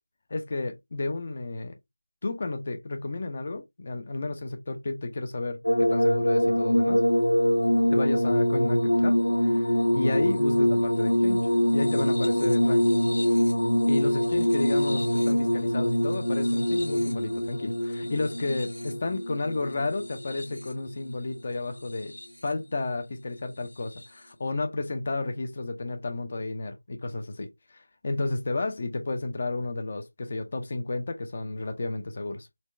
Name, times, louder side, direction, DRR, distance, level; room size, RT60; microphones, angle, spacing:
voice 1, 0.3-1.8 2.2-7.0 7.9-11.4 11.7-13.1 13.9-22.1 22.4-32.5, left 2 dB, 30° left, 0.6 m, -32 dB
sound 1, 5.6-20.9 21.8-22.5 23.9-24.0, equal, 65° left, 1.6 m, -24 dB
4.2 x 2.3 x 3.1 m
figure-of-eight pair, 170°, 0 cm